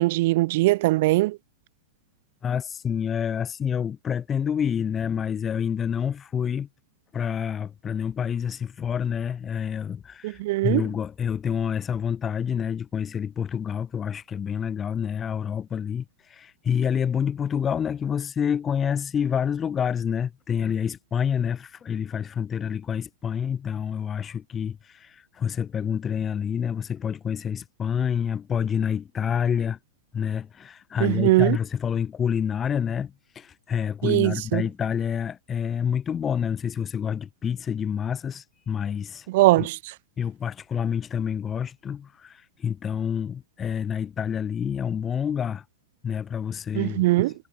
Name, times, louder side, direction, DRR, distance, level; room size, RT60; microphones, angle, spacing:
voice 1, 0.0-1.4 10.2-10.8 31.0-31.6 34.0-34.6 39.3-39.8 46.7-47.3, right 19 dB, 55° right, 7.2 m, -21 dB
voice 2, 2.4-6.7 7.1-29.8 30.1-39.3 39.6-39.7 40.2-45.6 46.0-47.2, left 8 dB, 25° left, 6.0 m, -28 dB
hypercardioid pair, 105°, 0 cm